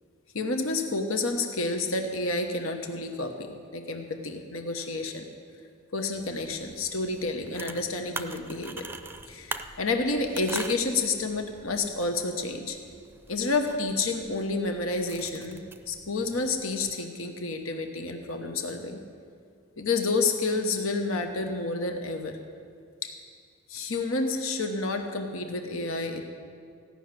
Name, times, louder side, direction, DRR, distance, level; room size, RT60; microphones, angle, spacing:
voice 1, 0.3-5.2 5.9-8.9 9.3-12.8 13.3-15.6 15.9-19.0 19.8-22.4 23.0-23.1 23.7-26.2, left 3 dB, 85° left, 5 dB, 1.1 m, -29 dB
sound 1, 6.2-17.0, right 3 dB, 10° right, 0.5 m, -43 dB
15.5 x 6.3 x 9.6 m, 2.3 s
head